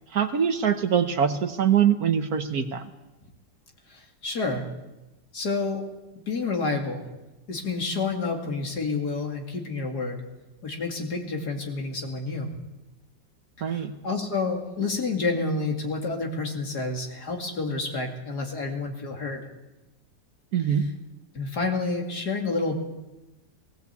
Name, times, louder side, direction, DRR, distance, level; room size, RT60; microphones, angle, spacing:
voice 1, 0.1-2.9 13.6-13.9 20.5-20.8, right 8 dB, 60° right, 8 dB, 1.4 m, -23 dB
voice 2, 3.9-4.7 5.3-5.9 6.3-7.1 7.5-10.2 10.6-12.5 13.7-19.4 21.3-22.8, left 3 dB, 60° left, 2 dB, 3.0 m, -29 dB
18.5 x 17.0 x 8.3 m, 1.0 s
omnidirectional pair, 2.0 m